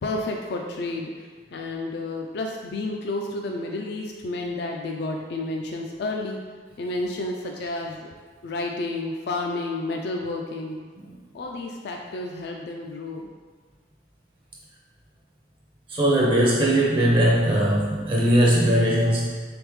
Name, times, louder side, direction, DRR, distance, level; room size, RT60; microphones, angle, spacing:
voice 1, 0.0-6.4 6.8-8.1 8.4-10.8 11.3-13.3, left 2 dB, 60° left, 1 dB, 0.3 m, -31 dB
voice 2, 15.9-19.4, right 1 dB, 25° right, -3 dB, 0.5 m, -20 dB
3.8 x 3.4 x 3.1 m, 1.5 s
head